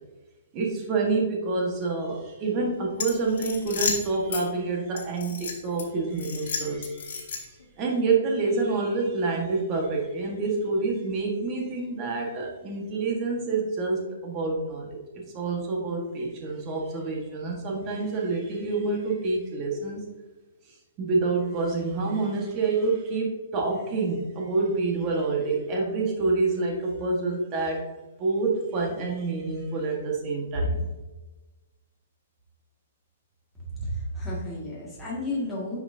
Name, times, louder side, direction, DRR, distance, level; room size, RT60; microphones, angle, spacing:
voice 1, 0.5-15.0 15.3-20.0 21.0-27.8 28.2-30.9, right 3 dB, 20° right, -1 dB, 1.4 m, -27 dB
sound 1, 2.9-4.4 5.0-5.8 6.2-7.6, left 5 dB, 70° left, 1.9 m, -32 dB
voice 2, 33.8-35.8, left 1 dB, ahead, -9 dB, 1.9 m, -32 dB
9.7 x 5.8 x 2.7 m, 1.1 s
hypercardioid pair, 175°, 0 cm